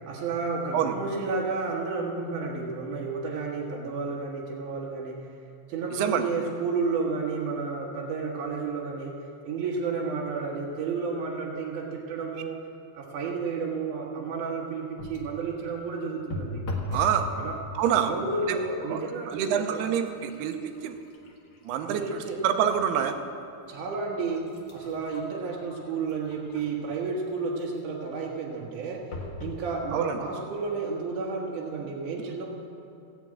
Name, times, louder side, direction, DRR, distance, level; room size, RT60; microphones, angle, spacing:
voice 1, 0.0-5.2 5.7-12.6 12.9-16.7 17.3-17.6 18.0-19.9 21.8-22.4 23.7-29.0 29.4-32.5, right 4 dB, 60° right, -3 dB, 2.6 m, -31 dB
voice 2, 5.9-6.2 16.9-17.3 17.7-18.1 18.5-18.6 18.9-19.0 19.3-20.9 21.6-23.2 29.9-30.2, right 9 dB, 85° right, 7 dB, 2.8 m, -26 dB
sound 1, 14.9-15.4 16.3-17.2 17.5-18.0 18.8-18.9 19.3-22.9 23.4-23.5 24.2-26.9 29.1-29.6 30.3-30.4 30.6-30.7, left 1 dB, 70° left, 1.1 m, -39 dB
16.0 x 7.4 x 8.7 m, 2.6 s
omnidirectional pair, 4.6 m